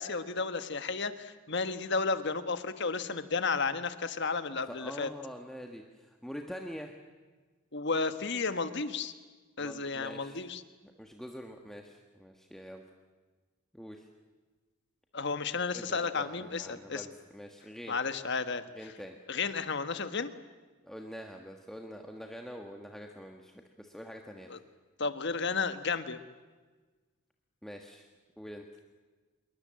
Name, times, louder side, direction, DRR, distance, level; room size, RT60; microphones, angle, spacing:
voice 1, 0.0-5.1 7.7-9.1 9.6-10.6 15.1-17.1 17.9-18.6 19.3-20.3 24.5-24.6 25.0-26.2, left 4 dB, 55° left, 10 dB, 1.4 m, -32 dB
voice 2, 4.7-6.9 9.6-10.4 10.8-12.8 13.7-14.1 15.7-18.0 18.7-19.2 20.8-24.5 27.6-28.1 28.4-28.6, equal, ahead, 2 dB, 1.4 m, -45 dB
26.5 x 23.0 x 7.6 m, 1.3 s
head